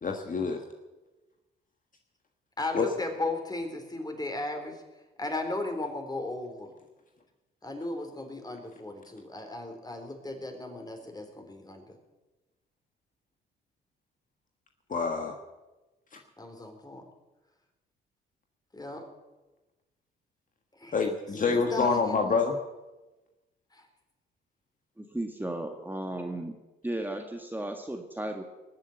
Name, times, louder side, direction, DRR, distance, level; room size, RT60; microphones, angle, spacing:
voice 1, 0.0-0.6 2.7-2.9 14.9-15.4 16.1-16.2 20.9-22.6, left 4 dB, 40° left, 3 dB, 1.6 m, -27 dB
voice 2, 2.6-4.8 5.2-6.7 7.6-12.0 16.4-17.0 18.7-19.1 20.8-21.0 21.4-22.4 23.7-23.8, left 2 dB, 20° left, 5 dB, 3.9 m, -36 dB
voice 3, 25.0-26.5 26.8-28.4, right 1 dB, 10° right, 3 dB, 1.7 m, -35 dB
20.0 x 7.7 x 8.0 m, 1.1 s
hypercardioid pair, 55°, 21 cm